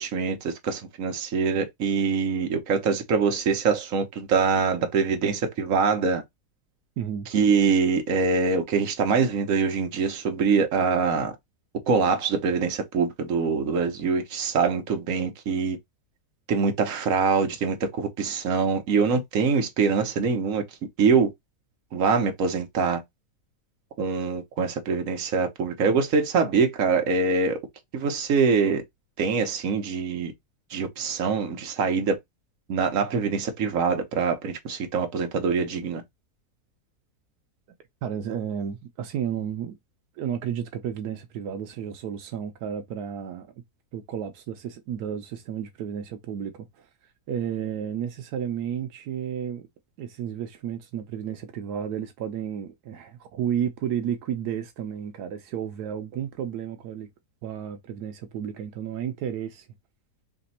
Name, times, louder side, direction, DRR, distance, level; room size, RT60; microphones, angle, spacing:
voice 1, 0.0-6.2 7.3-11.3 11.9-15.8 16.5-20.6 21.0-21.3 21.9-23.0 24.0-27.6 27.9-28.8 29.2-30.3 30.7-32.2 32.7-36.0, right 5 dB, 60° right, 1.3 m, -24 dB
voice 2, 7.0-7.3 38.0-39.8 40.1-43.5 43.9-46.9 47.3-49.7 50.0-57.1 57.4-59.7, right 9 dB, 85° right, 1.2 m, -32 dB
3.4 x 3.0 x 4.1 m
omnidirectional pair, 1.7 m